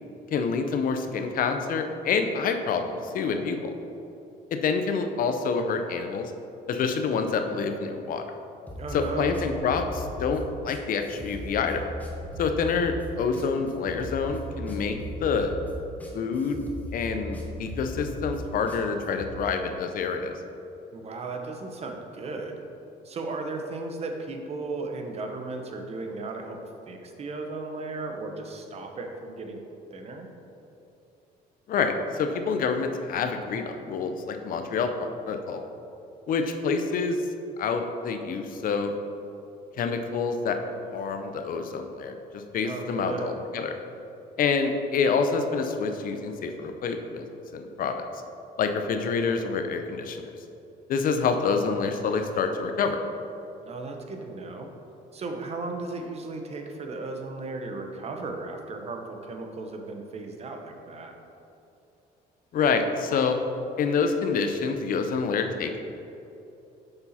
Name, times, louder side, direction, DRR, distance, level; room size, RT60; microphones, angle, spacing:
voice 1, 0.3-3.7 4.5-6.3 6.7-8.3 8.9-11.8 12.4-15.5 16.1-16.6 16.9-20.3 31.7-35.6 36.3-37.2 37.6-38.9 39.8-40.6 40.9-43.7 44.4-47.3 47.5-48.1 48.6-50.3 50.9-53.0 62.5-63.4 63.8-65.8, left 5 dB, 55° left, 6 dB, 0.7 m, -27 dB
sound 1, 8.7-19.3, equal, 10° left, 1.0 m, -38 dB
voice 2, 8.8-9.4 20.9-22.6 23.0-26.6 26.9-29.6 29.9-30.3 42.6-43.3 53.7-54.7 55.1-61.1, right 3 dB, 40° right, 3 dB, 0.9 m, -35 dB
6.9 x 5.5 x 4.2 m, 2.9 s
cardioid pair, 110°, 17 cm